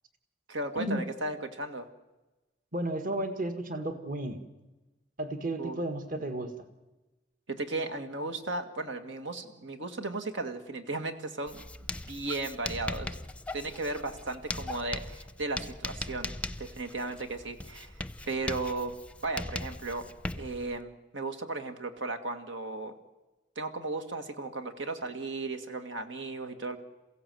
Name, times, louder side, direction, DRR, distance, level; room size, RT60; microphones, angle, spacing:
voice 1, 0.5-1.9 5.6-5.8 7.5-11.6 12.1-13.2 13.5-16.3 16.6-17.9 18.3-18.9 19.2-20.1 20.3-22.9 23.6-26.8, right 2 dB, 85° right, 6 dB, 2.0 m, -35 dB
voice 2, 2.7-4.4 5.2-6.5, right 1 dB, 50° right, 7 dB, 1.6 m, -33 dB
Writing, 11.5-20.8, left 2 dB, 5° left, 0.7 m, -39 dB
28.5 x 16.0 x 7.8 m, 1.1 s
head